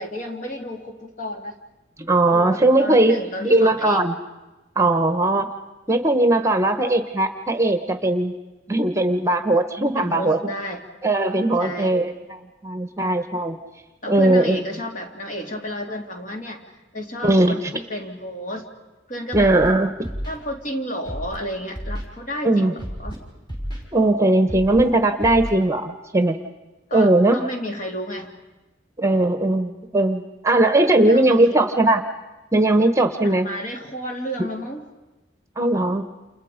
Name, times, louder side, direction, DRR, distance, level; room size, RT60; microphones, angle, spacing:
voice 1, 0.0-1.6 2.3-4.0 9.9-10.8 11.6-12.0 14.0-18.7 19.1-19.5 20.3-23.2 26.9-28.3 31.1-31.6 33.2-34.8, equal, 45° left, 2 dB, 3.2 m, -32 dB
voice 2, 2.0-3.1 3.4-4.2 4.8-5.5 5.9-8.3 8.7-10.4 11.0-13.6 14.1-14.6 17.2-17.6 19.3-20.0 22.4-22.7 23.9-26.4 26.9-27.4 29.0-32.0 32.5-33.5 35.6-36.0, right 2 dB, 15° right, 8 dB, 1.1 m, -19 dB
Scratching (performance technique), 19.3-19.7 20.0-20.4 21.0-21.4 21.7-22.0 22.8-23.2 23.5-23.8 24.5-24.8 25.2-25.5, equal, 25° left, 5.7 m, -31 dB
29.5 x 28.5 x 5.2 m, 1.1 s
head